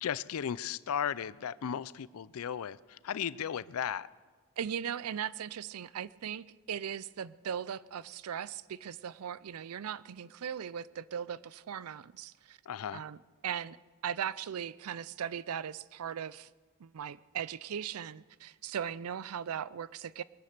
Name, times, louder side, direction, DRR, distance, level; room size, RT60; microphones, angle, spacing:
voice 1, 0.0-4.1 12.7-13.0, left 8 dB, 75° left, 0.4 m, -35 dB
voice 2, 4.6-12.6 12.9-13.8 14.0-16.5 16.8-20.2, right 8 dB, 85° right, 0.4 m, -38 dB
21.5 x 10.0 x 6.6 m
head